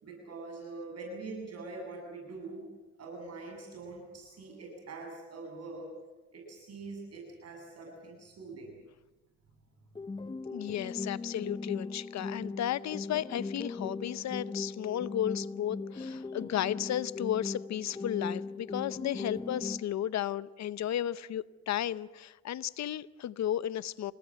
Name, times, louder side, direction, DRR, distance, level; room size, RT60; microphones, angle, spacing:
voice 1, 0.0-2.6 3.0-5.9 6.3-8.8 10.2-10.3, right 3 dB, 55° right, 1 dB, 7.6 m, -44 dB
sound 1, 10.0-20.0, left 3 dB, 15° left, 0.7 m, -39 dB
voice 2, 10.5-24.1, left 11 dB, 65° left, 17 dB, 0.7 m, -34 dB
28.0 x 19.0 x 7.6 m, 1.1 s
cardioid pair, 90°, 30 cm